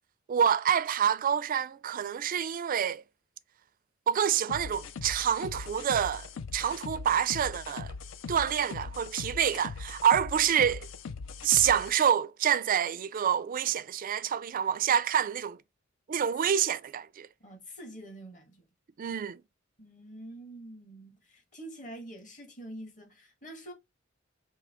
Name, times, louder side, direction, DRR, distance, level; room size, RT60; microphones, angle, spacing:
voice 1, 0.3-3.0 4.1-6.3 6.5-7.9 8.3-10.9 11.4-15.6 16.1-17.3 19.0-19.4, right 9 dB, 45° right, 0.3 m, -27 dB
sound 1, 4.5-12.0, left 4 dB, 70° left, 0.5 m, -41 dB
voice 2, 17.4-18.7 19.8-23.7, right 1 dB, 40° left, 1.6 m, -46 dB
4.6 x 2.8 x 3.6 m
head